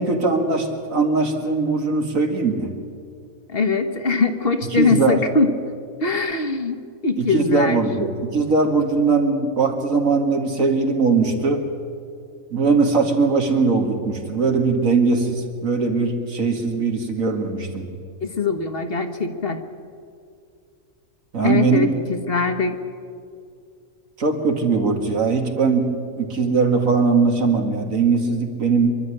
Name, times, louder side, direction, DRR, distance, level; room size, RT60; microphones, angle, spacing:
voice 1, 0.0-2.7 4.7-5.2 7.2-11.7 12.5-17.9 21.3-21.9 24.2-25.9 26.2-28.9, right 4 dB, 75° right, 4 dB, 2.4 m, -20 dB
voice 2, 3.5-5.5 6.0-7.8 18.2-19.6 21.4-22.8, left 4 dB, 45° left, 7 dB, 1.3 m, -22 dB
25.5 x 11.5 x 9.8 m, 2.3 s
omnidirectional pair, 1.4 m